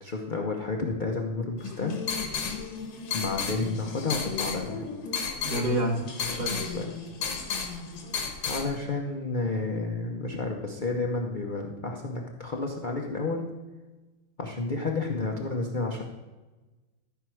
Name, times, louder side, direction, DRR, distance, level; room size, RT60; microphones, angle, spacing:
voice 1, 0.0-2.0 3.1-4.8 6.7-6.9 8.5-13.5 14.4-16.0, left 3 dB, 65° left, 0 dB, 0.4 m, -31 dB
sound 1, 1.6-8.7, left 6 dB, 85° left, 2.3 m, -33 dB
voice 2, 5.4-6.6, right 1 dB, 45° right, 3 dB, 1.8 m, -29 dB
14.0 x 4.7 x 6.3 m, 1.2 s
omnidirectional pair, 2.3 m